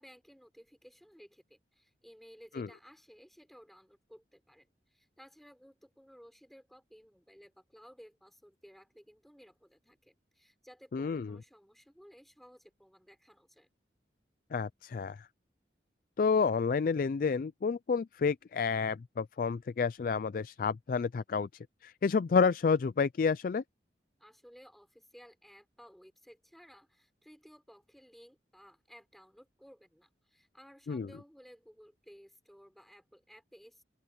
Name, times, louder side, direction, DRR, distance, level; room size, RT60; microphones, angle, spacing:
voice 1, 0.0-13.7 24.2-33.8, equal, ahead, 5.8 m, -57 dB
voice 2, 10.9-11.3 14.5-15.2 16.2-21.5 21.8-23.6 30.9-31.1, left 5 dB, 50° left, 0.3 m, -29 dB
open air
head